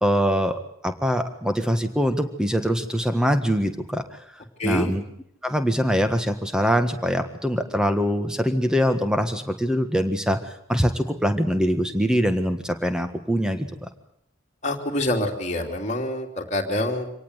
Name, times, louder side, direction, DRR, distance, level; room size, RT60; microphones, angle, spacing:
voice 1, 0.0-4.0 4.6-5.0 5.4-13.9, equal, 5° right, 8 dB, 1.5 m, -23 dB
voice 2, 4.6-4.9 14.6-17.1, left 1 dB, 35° left, 0 dB, 3.0 m, -26 dB
25.0 x 18.5 x 8.1 m, 0.74 s
head